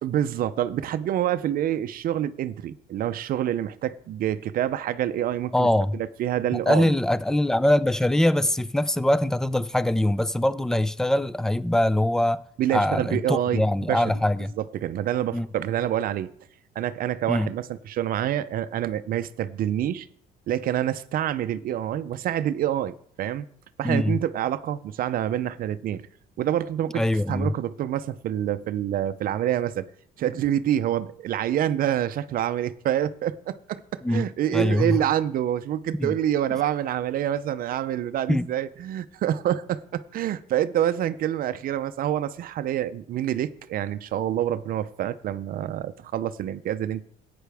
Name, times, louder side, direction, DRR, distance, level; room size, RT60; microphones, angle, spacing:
voice 1, 0.0-5.7 5.9-6.9 12.6-13.6 13.9-14.0 14.7-16.3 16.8-20.1 20.5-23.5 23.8-26.0 26.4-29.9 30.2-47.0, right 11 dB, 60° right, 0.5 m, -27 dB
voice 2, 5.5-6.0 6.5-12.4 12.7-14.5 15.3-15.5 17.3-17.5 23.8-24.2 26.9-27.5 34.0-35.0 36.0-36.2 38.3-38.5, left 1 dB, 5° left, 0.4 m, -23 dB
14.0 x 9.3 x 3.4 m
cardioid pair, 110°, 17 cm